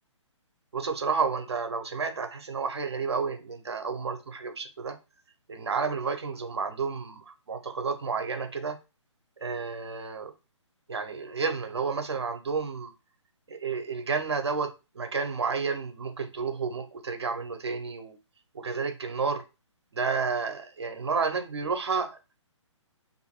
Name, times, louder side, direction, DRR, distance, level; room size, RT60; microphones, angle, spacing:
voice 1, 0.7-5.0 5.5-8.8 9.4-10.3 10.9-12.9 13.5-18.2 18.5-19.4 19.9-22.2, right 5 dB, 60° right, 0.7 m, -31 dB
2.6 x 2.6 x 2.8 m
figure-of-eight pair, 135°, 16 cm